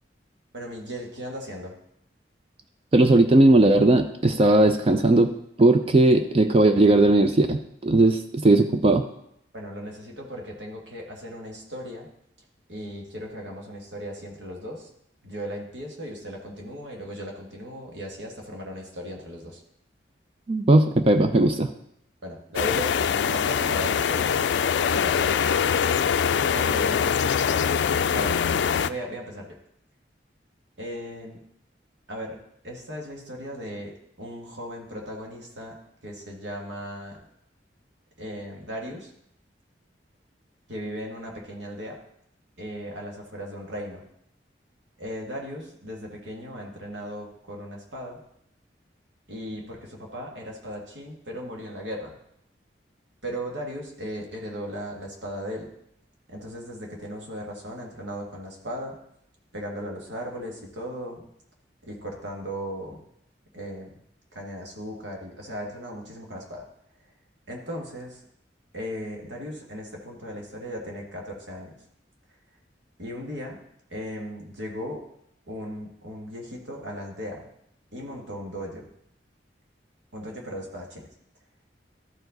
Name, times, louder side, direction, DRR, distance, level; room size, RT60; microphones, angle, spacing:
voice 1, 0.5-1.8 9.5-12.1 12.7-14.9 15.2-19.6 22.2-24.5 24.9-25.3 26.5-27.1 28.1-29.5 30.8-31.4 32.1-32.4 32.6-37.2 38.2-39.1 40.7-42.0 42.6-44.0 45.0-48.2 49.3-52.2 53.2-55.7 56.3-59.0 59.5-61.3 61.8-63.0 63.5-63.9 64.3-66.6 67.5-68.2 68.7-71.7 73.0-73.6 73.9-75.0 75.5-77.5 77.9-78.9 80.1-81.1, equal, 85° right, 0 dB, 1.8 m, -37 dB
voice 2, 2.9-5.3 5.6-9.0 20.5-21.7, right 2 dB, 30° right, 8 dB, 0.4 m, -18 dB
sound 1, 22.6-28.9, left 7 dB, 80° left, 0.3 m, -23 dB
13.0 x 4.8 x 3.9 m, 0.74 s
head